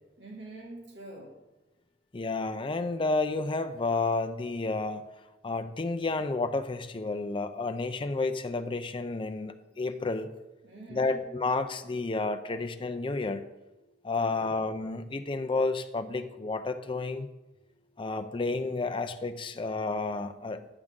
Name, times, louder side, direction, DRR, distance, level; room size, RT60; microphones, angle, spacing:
voice 1, 0.2-1.3 10.6-11.2 14.2-14.8, right 2 dB, 80° right, -1 dB, 1.8 m, -46 dB
voice 2, 2.1-5.0 5.4-10.3 10.9-13.4 14.0-17.3 18.0-20.7, left 3 dB, 30° left, 9 dB, 0.5 m, -31 dB
11.0 x 7.4 x 3.7 m, 1.0 s
head